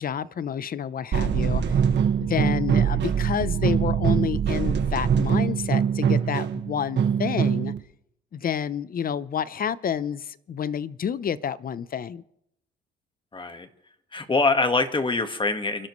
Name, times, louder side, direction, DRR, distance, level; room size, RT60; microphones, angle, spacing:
voice 1, 0.0-1.6 2.2-7.7 8.3-12.2, left 8 dB, 45° left, 0.8 m, -29 dB
sound 1, 1.1-7.8, right 7 dB, 65° right, 1.6 m, -23 dB
voice 2, 13.3-13.7 14.1-15.9, left 3 dB, 25° left, 1.6 m, -24 dB
29.5 x 12.0 x 3.2 m
cardioid pair, 90°, 20 cm